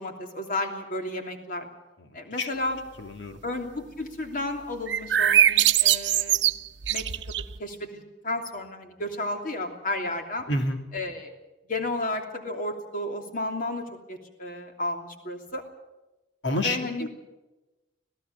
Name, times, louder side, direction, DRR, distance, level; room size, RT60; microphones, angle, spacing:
voice 1, 0.0-1.7 2.1-2.8 3.4-6.5 6.9-7.0 7.6-10.4 10.9-11.3 11.7-15.6 16.6-17.1, left 2 dB, 50° left, 3 dB, 3.0 m, -32 dB
voice 2, 2.0-2.5 3.0-3.4 10.5-10.8 16.4-17.1, left 1 dB, 80° left, 5 dB, 2.7 m, -29 dB
sound 1, 4.9-7.6, right 11 dB, 80° right, 0.8 m, -22 dB
26.0 x 17.5 x 6.9 m, 1.0 s
head